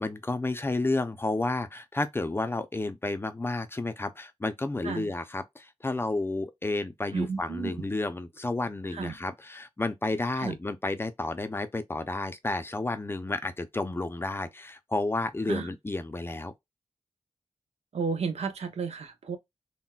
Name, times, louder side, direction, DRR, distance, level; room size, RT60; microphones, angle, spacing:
voice 1, 0.0-16.5, left 2 dB, 20° left, 0.5 m, -31 dB
voice 2, 7.1-7.8 8.9-9.2 10.4-10.5 15.5-15.7 17.9-19.4, right 5 dB, 90° right, 0.7 m, -32 dB
3.9 x 2.2 x 2.2 m
wide cardioid pair, 100°, 11 cm